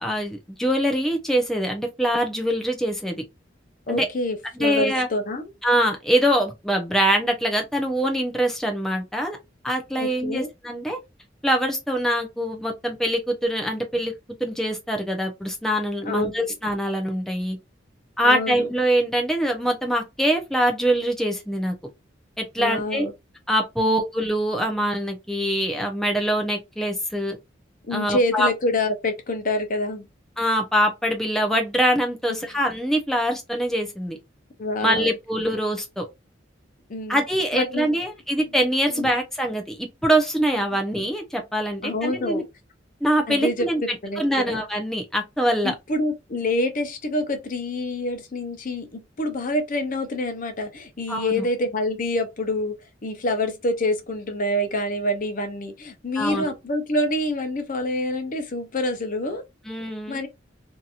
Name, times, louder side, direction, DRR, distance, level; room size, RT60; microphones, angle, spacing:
voice 1, 0.0-3.2 3.9-4.1 4.6-5.1 5.6-9.4 9.6-11.0 11.4-14.1 14.4-17.6 18.2-21.7 22.4-23.1 23.5-27.4 27.9-28.5 30.4-34.2 34.8-36.0 37.1-39.8 40.0-42.4 43.0-45.7 51.1-51.4 56.2-56.5 59.7-60.2, equal, ahead, 0.5 m, -24 dB
voice 2, 3.9-5.5 10.0-10.5 16.0-16.4 18.2-18.7 22.6-23.1 23.8-24.0 27.9-30.1 34.6-35.2 36.9-37.2 37.5-37.9 38.9-39.1 41.8-42.4 43.3-43.7 44.0-44.2 44.5-44.6 45.6-52.7 53.0-59.4 60.1-60.3, left 1 dB, 45° left, 0.7 m, -26 dB
2.8 x 2.7 x 2.4 m
head